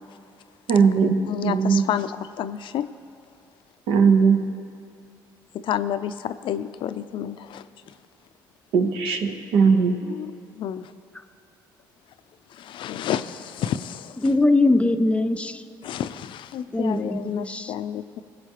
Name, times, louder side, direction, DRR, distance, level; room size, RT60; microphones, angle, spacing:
voice 1, 0.7-1.8 3.9-4.4 8.7-10.0, right 5 dB, 80° right, 6 dB, 0.8 m, -19 dB
voice 2, 1.3-2.1 2.4-2.9 5.5-7.6 10.1-10.3 10.6-10.9 12.6-14.2 15.8-18.2, left 10 dB, 65° left, 12 dB, 0.4 m, -30 dB
voice 3, 14.2-15.6 16.7-17.7, left 2 dB, 10° left, 10 dB, 0.5 m, -21 dB
21.0 x 7.9 x 3.0 m, 2.5 s
supercardioid pair, 65°, 9 cm